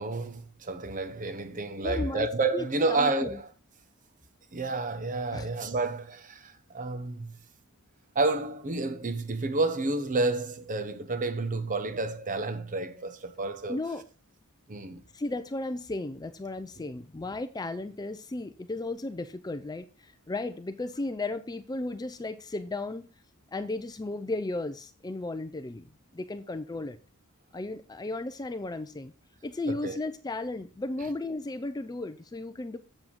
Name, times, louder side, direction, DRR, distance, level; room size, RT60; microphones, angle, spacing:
voice 1, 0.0-3.4 4.5-7.3 8.1-13.8 14.7-15.0 29.7-30.0, right 3 dB, 35° right, 0.9 m, -30 dB
voice 2, 1.8-2.3 2.5-2.6 2.9-3.4 5.3-5.5 13.7-14.0 15.1-23.1 23.5-27.0 27.5-29.1 29.4-32.8, left 2 dB, 15° left, 0.4 m, -34 dB
7.6 x 7.4 x 3.6 m
head